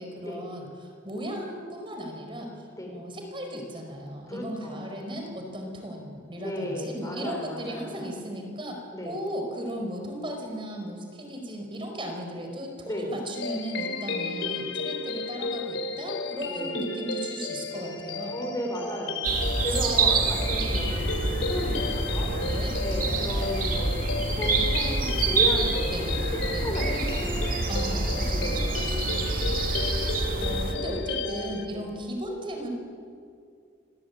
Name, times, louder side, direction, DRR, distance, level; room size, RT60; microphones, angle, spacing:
voice 1, 0.0-2.7 2.9-18.4 22.4-22.7 25.9-27.0 27.7-29.8 30.4-32.7, equal, 25° right, 3 dB, 4.9 m, -36 dB
voice 2, 4.3-4.8 6.4-8.0 8.9-9.2 12.8-13.1 16.5-16.8 18.3-27.4 28.3-28.9 31.7-31.9, left 1 dB, 20° left, 2 dB, 4.7 m, -35 dB
sound 1, 13.3-31.7, left 3 dB, 90° left, 3.8 m, -33 dB
sound 2, 19.2-30.7, right 3 dB, 50° right, 3.1 m, -27 dB
27.5 x 22.0 x 9.5 m, 2.3 s
head